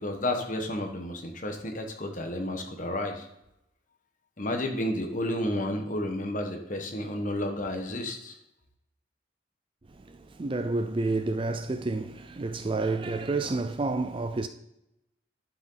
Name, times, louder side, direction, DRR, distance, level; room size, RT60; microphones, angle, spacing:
voice 1, 0.0-3.3 4.4-8.3, left 1 dB, 40° left, 1.3 m, -31 dB
voice 2, 9.9-14.5, right 3 dB, 25° right, 0.4 m, -30 dB
11.0 x 6.7 x 3.9 m
head